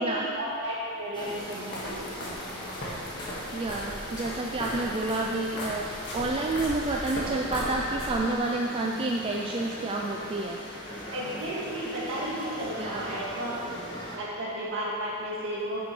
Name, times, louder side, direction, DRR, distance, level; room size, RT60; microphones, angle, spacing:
voice 1, 0.0-2.7 11.1-13.6 14.1-15.8, equal, 60° right, -6 dB, 2.0 m, -33 dB
sound 1, 1.1-14.2, equal, 20° left, 1.2 m, -40 dB
sound 2, 1.2-8.5, left 1 dB, 50° left, 1.7 m, -37 dB
voice 2, 3.5-5.9 6.1-10.6 12.2-12.3 12.8-13.1, right 2 dB, 25° right, -1 dB, 0.4 m, -29 dB
9.7 x 7.0 x 3.2 m, 2.6 s
head